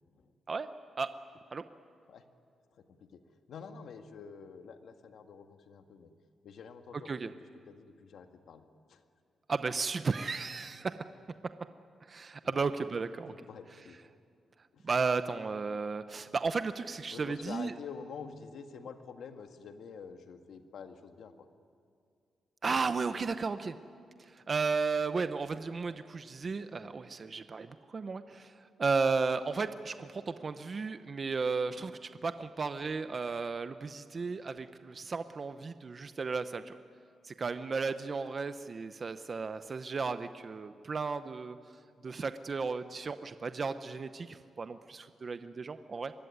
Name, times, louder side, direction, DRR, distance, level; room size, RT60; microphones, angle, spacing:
voice 1, 2.8-3.2 3.5-6.1 6.4-7.3 7.7-8.6 8.9-9.0 12.4-12.7 13.3-14.0 14.7-14.9 17.1-21.5, left 6 dB, 75° left, 6 dB, 1.7 m, -47 dB
voice 2, 9.5-11.0 12.0-13.3 14.8-17.7 22.6-23.8 24.2-36.8 37.2-46.1, right 4 dB, 35° right, 10 dB, 0.7 m, -34 dB
24.0 x 21.5 x 9.6 m, 2.3 s
wide cardioid pair, 140°, 0 cm